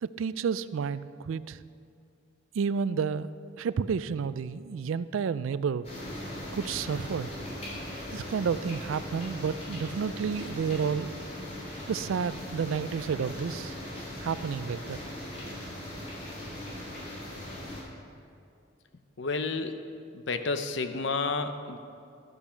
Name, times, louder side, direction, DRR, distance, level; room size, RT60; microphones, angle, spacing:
voice 1, 0.0-1.6 2.5-3.3 3.6-5.9 6.5-7.3 8.1-11.1 11.9-13.7 14.2-15.0, right 6 dB, 90° right, 15 dB, 0.4 m, -30 dB
sound 1, 5.8-17.8, left 1 dB, 35° left, 3.2 m, -39 dB
voice 2, 19.2-19.8 20.1-21.8, left 4 dB, 65° left, 8 dB, 0.7 m, -30 dB
12.0 x 8.8 x 6.2 m, 2.5 s
head